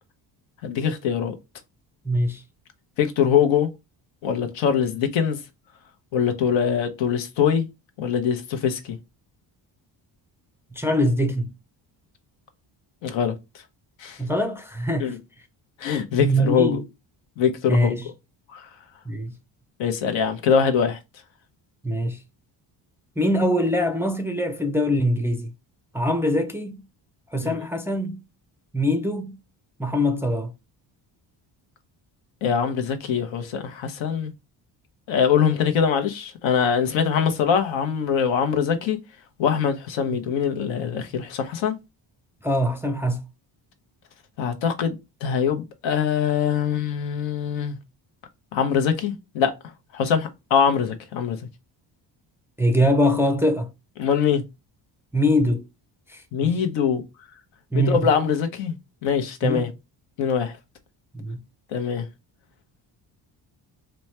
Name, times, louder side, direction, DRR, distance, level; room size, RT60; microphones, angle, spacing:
voice 1, 0.6-1.3 3.0-3.7 4.2-5.4 6.1-7.7 8.0-9.0 13.0-13.3 14.0-14.2 15.0-15.2 15.8-16.8 17.4-18.0 18.5-18.7 19.8-21.0 27.4-27.5 32.4-34.3 35.1-39.0 39.4-41.7 44.4-47.8 48.5-49.5 49.9-51.4 54.0-54.4 56.3-57.0 57.7-58.8 59.0-59.7 60.2-60.6 61.7-62.0, left 7 dB, 85° left, 0.9 m, -23 dB
voice 2, 2.1-2.4 10.7-11.5 14.2-15.1 16.2-16.8 17.7-18.1 19.1-19.3 21.8-22.2 23.2-25.5 25.9-26.8 27.3-28.2 28.7-29.4 29.8-30.5 42.4-43.2 52.6-53.7 55.1-55.6 56.1-56.6 57.7-58.1 59.4-59.6 61.1-61.4, equal, 5° right, 0.3 m, -23 dB
3.1 x 2.2 x 4.2 m
cardioid pair, 115°, 44 cm